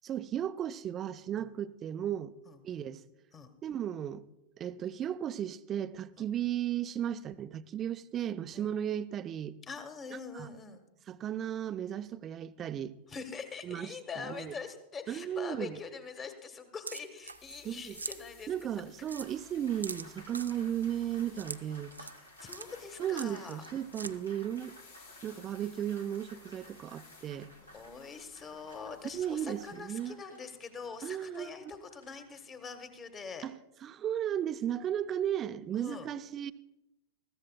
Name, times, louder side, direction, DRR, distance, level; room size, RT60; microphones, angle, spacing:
voice 1, 0.0-2.3 2.6-3.0 3.6-4.3 4.6-9.6 10.1-10.5 11.1-13.0 13.6-14.5 15.1-15.8 17.6-18.0 18.5-21.9 23.0-24.8 25.2-27.5 29.1-30.2 31.0-31.7 33.4-33.5 33.8-36.5, right 10 dB, 30° right, 0.5 m, -35 dB
voice 2, 9.7-10.8 13.1-18.5 22.0-22.1 22.4-23.6 27.7-33.5 35.7-36.1, left 5 dB, 20° left, 1.3 m, -44 dB
sound 1, 16.9-17.7 17.9-18.2 18.6-18.7 19.1-19.3 19.8-20.5 21.4-21.6 21.9-22.2 22.5-22.7 23.1-23.7 23.9-24.1, right 3 dB, 80° right, 0.5 m, -42 dB
sound 2, 17.2-30.1, left 5 dB, 70° left, 4.9 m, -59 dB
Applause, 18.7-33.3, equal, 85° left, 1.9 m, -56 dB
21.0 x 15.0 x 2.2 m
figure-of-eight pair, 90°, 0 cm